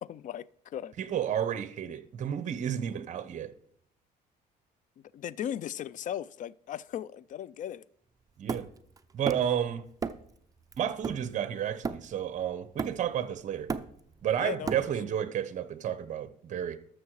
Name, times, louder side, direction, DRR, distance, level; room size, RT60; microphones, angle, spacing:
voice 1, 0.0-0.9 5.1-7.8 14.4-14.9, left 10 dB, 50° left, 0.4 m, -37 dB
voice 2, 1.0-3.5 8.4-8.7 9.1-9.9 10.8-13.7 14.2-16.8, right 9 dB, 45° right, 0.9 m, -31 dB
Hammer, 8.5-9.6 10.0-10.4 10.7-12.3 12.8-13.2 13.5-15.2, right 5 dB, 20° right, 0.6 m, -36 dB
12.5 x 6.5 x 4.8 m
cardioid pair, 110°, 17 cm